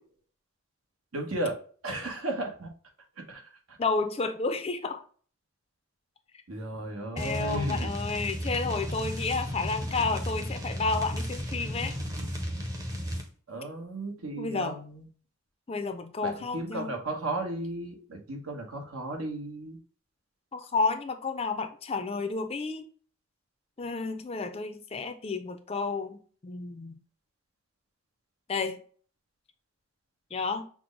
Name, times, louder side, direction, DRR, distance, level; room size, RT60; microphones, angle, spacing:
voice 1, 1.1-1.6 1.8-2.7 3.3-3.4 3.7-3.8 6.5-7.9 13.5-15.0 16.2-19.8, right 1 dB, 80° right, 1 dB, 1.1 m, -34 dB
voice 2, 3.8-5.0 7.2-12.0 14.4-14.8 15.7-16.9 20.5-22.8 23.8-27.0 28.5-28.8 30.3-30.6, left 4 dB, 25° left, 8 dB, 0.4 m, -31 dB
sound 1, 7.2-13.3, equal, 15° right, 0.6 m, -34 dB
6.0 x 2.1 x 3.7 m, 0.43 s
head